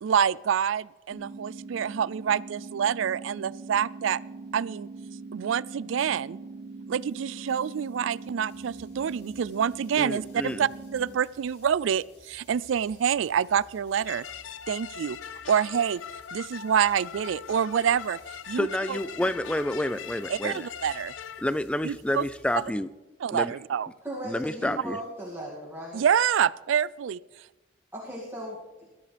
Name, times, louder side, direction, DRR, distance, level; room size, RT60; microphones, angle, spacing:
voice 1, 0.0-4.2 4.5-4.9 5.3-6.4 6.9-14.2 14.7-15.2 15.5-16.0 16.3-18.2 18.5-19.0 20.3-21.1 21.8-22.3 23.2-23.9 25.9-27.2, right 8 dB, 80° right, 21 dB, 0.4 m, -27 dB
sound 1, 1.1-11.1, right 3 dB, 30° right, 2.9 m, -42 dB
sound 2, 7.0-22.6, left 2 dB, 60° left, 6.6 m, -58 dB
voice 2, 10.0-10.6 18.5-20.7 21.4-22.9 23.3-23.6 24.2-25.0, left 1 dB, 5° left, 13 dB, 0.4 m, -29 dB
sound 3, 14.1-21.4, left 8 dB, 85° left, 0.6 m, -41 dB
voice 3, 24.0-26.1 27.9-28.9, right 1 dB, 10° right, -6 dB, 2.3 m, -37 dB
21.5 x 13.0 x 3.4 m, 1.1 s
head